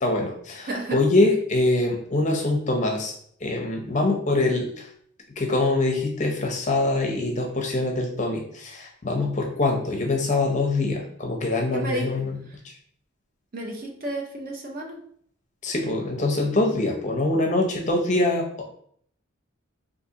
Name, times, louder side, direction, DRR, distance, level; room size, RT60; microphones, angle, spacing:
voice 1, 0.0-3.1 3.4-4.9 5.4-12.3 15.6-18.5, left 2 dB, 35° left, 1 dB, 0.5 m, -24 dB
voice 2, 0.6-1.0 11.7-12.1 13.5-15.0, right 1 dB, 40° right, 1 dB, 0.6 m, -31 dB
3.8 x 2.6 x 2.7 m, 0.63 s
head